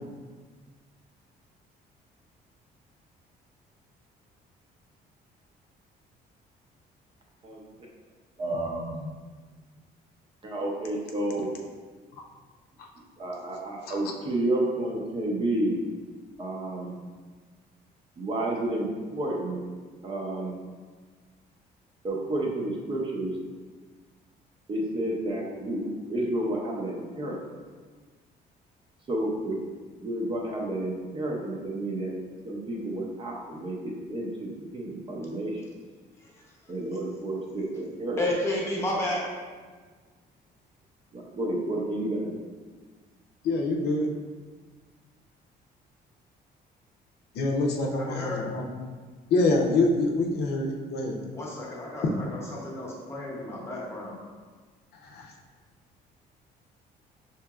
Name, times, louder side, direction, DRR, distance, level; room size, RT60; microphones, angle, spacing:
voice 1, 8.4-9.1 10.4-11.5 13.2-15.8 16.4-16.9 18.2-19.6 20.0-20.5 22.0-23.3 24.7-27.4 29.1-29.6 30.0-32.1 32.4-35.6 36.7-38.2 41.1-42.3, right 1 dB, 30° right, -2 dB, 0.6 m, -30 dB
voice 2, 38.2-39.3 48.0-48.4 51.3-54.2, left 1 dB, 15° left, -4 dB, 0.8 m, -31 dB
voice 3, 43.4-44.1 47.3-48.6 49.3-51.2 55.0-55.3, left 2 dB, 70° left, 0 dB, 0.6 m, -25 dB
5.6 x 2.8 x 2.3 m, 1.4 s
cardioid pair, 160°, 17 cm